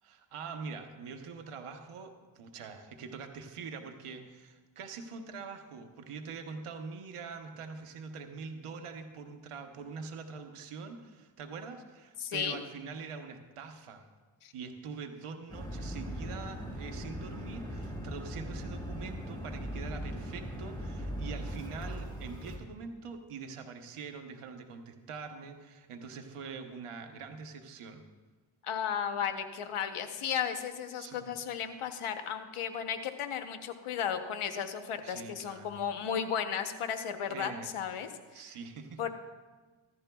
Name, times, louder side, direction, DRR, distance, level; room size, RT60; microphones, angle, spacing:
voice 1, 0.0-14.1 14.5-28.0 31.0-31.3 35.0-35.8 37.3-37.7 38.3-39.0, right 5 dB, 90° right, 5 dB, 0.9 m, -44 dB
voice 2, 12.2-12.6 14.4-14.5 28.6-38.4 39.0-39.1, left 8 dB, 85° left, 8 dB, 0.9 m, -34 dB
sound 1, 15.5-22.6, equal, 10° left, 3.2 m, -39 dB
15.5 x 11.5 x 2.3 m, 1.3 s
cardioid pair, 50°, 50 cm